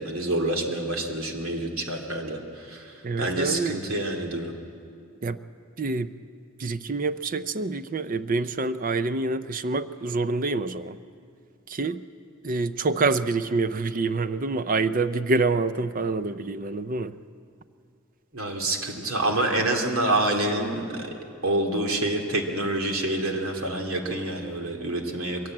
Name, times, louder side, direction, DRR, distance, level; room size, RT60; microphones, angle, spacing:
voice 1, 0.0-4.5 18.3-21.1 21.4-25.4, right 1 dB, 90° right, 3 dB, 2.4 m, -27 dB
voice 2, 3.0-3.8 5.2-5.4 5.8-6.1 6.6-11.0 11.7-12.0 12.4-17.2, right 3 dB, 40° right, 12 dB, 0.5 m, -26 dB
22.0 x 16.5 x 8.7 m, 2.4 s
head